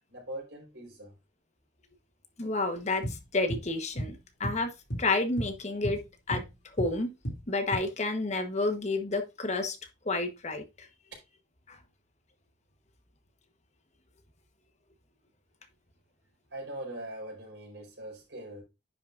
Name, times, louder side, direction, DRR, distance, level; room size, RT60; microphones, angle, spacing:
voice 1, 0.1-1.1 16.5-18.6, right 1 dB, 80° right, 4.4 m, -41 dB
voice 2, 2.4-4.7 5.0-6.0 6.3-6.4 6.8-7.1 7.5-9.8 10.0-10.9 11.7-11.8, left 2 dB, 40° left, 1.2 m, -30 dB
sound 1, 3.0-3.7 4.0-4.2 4.4-5.6 5.8-7.0 7.2-7.8, equal, 80° left, 2.7 m, -34 dB
9.9 x 5.9 x 2.5 m
head